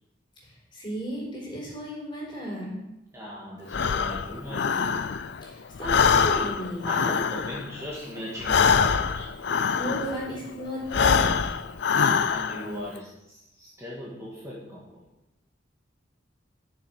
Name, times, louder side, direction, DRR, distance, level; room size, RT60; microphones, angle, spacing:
voice 1, 0.7-2.8 5.4-7.0 9.8-11.5, equal, 25° left, -4 dB, 3.9 m, -34 dB
voice 2, 3.1-5.0 6.8-9.3 10.0-10.2 11.9-15.0, equal, 15° right, -5 dB, 1.8 m, -38 dB
Breathing, 3.7-5.4 5.7-10.3 10.8-12.7, left 6 dB, 60° left, 0.5 m, -24 dB
12.5 x 6.5 x 5.0 m, 0.91 s
head